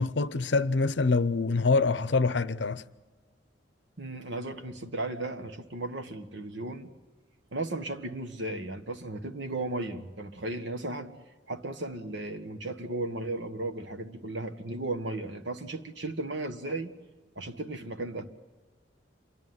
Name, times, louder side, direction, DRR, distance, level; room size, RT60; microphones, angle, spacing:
voice 1, 0.0-2.8, left 3 dB, 70° left, 0.7 m, -25 dB
voice 2, 4.0-6.9 7.5-11.1 11.5-16.9 17.3-18.2, right 2 dB, 75° right, 1.5 m, -35 dB
27.5 x 11.0 x 9.5 m
head